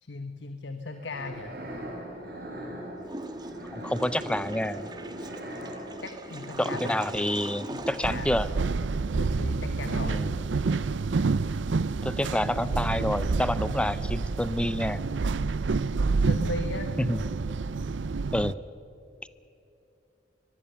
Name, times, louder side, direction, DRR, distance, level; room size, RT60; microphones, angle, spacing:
voice 1, 0.0-1.5 6.0-7.0 7.7-8.3 9.1-10.2 16.2-16.9, left 3 dB, 85° left, 8 dB, 1.2 m, -37 dB
sound 1, 0.9-8.9, right 1 dB, 55° right, 4.6 m, -41 dB
Water / Toilet flush, 3.0-9.2, right 2 dB, 25° right, 1.3 m, -40 dB
voice 2, 3.7-4.9 6.6-8.5 10.1-10.3 12.0-15.0 17.0-17.2 18.3-18.6 19.2-19.3, left 1 dB, 5° left, 16 dB, 0.5 m, -28 dB
sound 2, 8.0-18.5, right 4 dB, 90° right, 0.5 m, -28 dB
23.5 x 21.5 x 6.9 m, 2.9 s
head